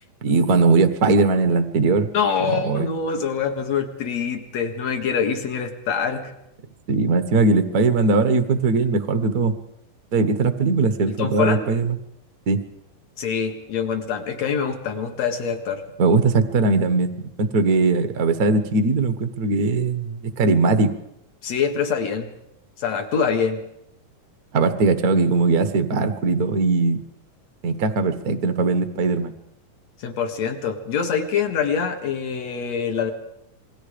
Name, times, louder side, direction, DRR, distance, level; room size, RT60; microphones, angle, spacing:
voice 1, 0.2-2.1 2.5-2.9 6.9-9.5 10.1-12.0 12.5-12.6 16.0-20.9 24.5-27.0 27.6-29.3, right 3 dB, 85° right, 9 dB, 0.8 m, -20 dB
voice 2, 2.1-6.3 11.1-11.6 13.2-15.8 21.4-22.3 22.8-23.6 30.0-33.1, left 6 dB, 55° left, 5 dB, 2.8 m, -25 dB
27.5 x 21.5 x 5.2 m, 0.81 s
omnidirectional pair, 3.9 m